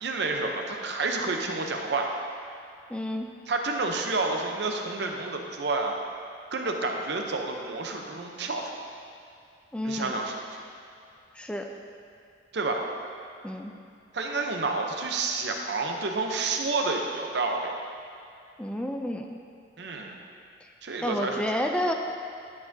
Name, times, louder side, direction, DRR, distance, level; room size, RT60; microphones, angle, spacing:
voice 1, 0.0-2.1 3.5-6.0 6.5-8.7 9.8-10.3 12.5-12.8 14.1-17.7 19.8-20.2 20.8-21.6, right 3 dB, 65° right, 2 dB, 0.7 m, -29 dB
voice 2, 2.9-3.3 9.7-10.1 11.3-11.7 13.4-13.7 18.6-19.4 21.0-21.9, left 1 dB, 5° left, 3 dB, 0.3 m, -30 dB
10.5 x 7.3 x 2.7 m, 2.4 s
head